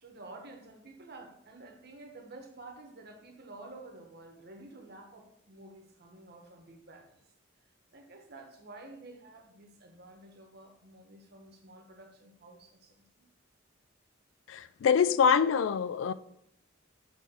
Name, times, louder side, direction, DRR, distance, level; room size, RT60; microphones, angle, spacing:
voice 1, 0.0-7.2 7.9-13.3, right 2 dB, 55° right, 1.0 m, -50 dB
voice 2, 14.5-16.1, left 6 dB, 70° left, 0.3 m, -25 dB
6.4 x 3.3 x 5.0 m
head